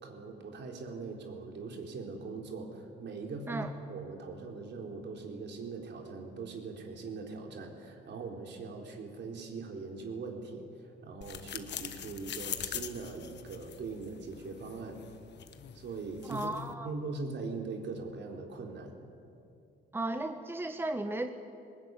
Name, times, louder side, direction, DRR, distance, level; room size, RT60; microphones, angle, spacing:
voice 1, 0.0-15.0 15.7-16.5 16.8-19.0, right 4 dB, 65° right, 2 dB, 3.9 m, -41 dB
sound 1, 11.2-16.7, left 9 dB, 60° left, 1.4 m, -43 dB
voice 2, 16.2-16.9 19.9-21.3, right 2 dB, 10° right, 7 dB, 1.3 m, -35 dB
20.0 x 20.0 x 9.6 m, 2.5 s
cardioid pair, 90°, 20 cm